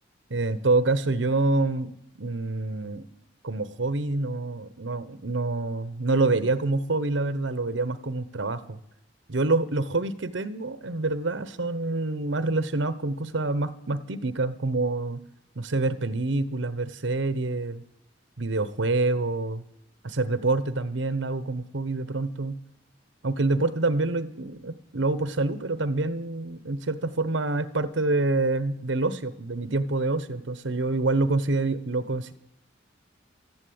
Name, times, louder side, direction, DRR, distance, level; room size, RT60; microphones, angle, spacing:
voice 1, 0.3-3.1 3.4-8.8 9.3-15.2 15.6-17.8 18.4-19.6 20.0-22.6 23.2-32.3, right 2 dB, 75° right, 14 dB, 0.9 m, -27 dB
13.0 x 11.5 x 8.7 m, 0.79 s
head